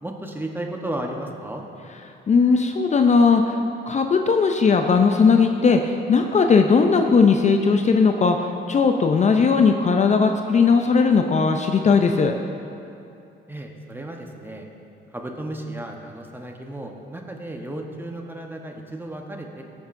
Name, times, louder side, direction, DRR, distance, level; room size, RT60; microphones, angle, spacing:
voice 1, 0.0-1.6 13.5-14.7 15.1-19.6, right 1 dB, 10° right, 2 dB, 1.0 m, -34 dB
voice 2, 2.3-3.6 3.9-12.3, left 5 dB, 35° left, 5 dB, 0.5 m, -18 dB
15.5 x 7.2 x 2.6 m, 2.7 s
cardioid pair, 90°, 20 cm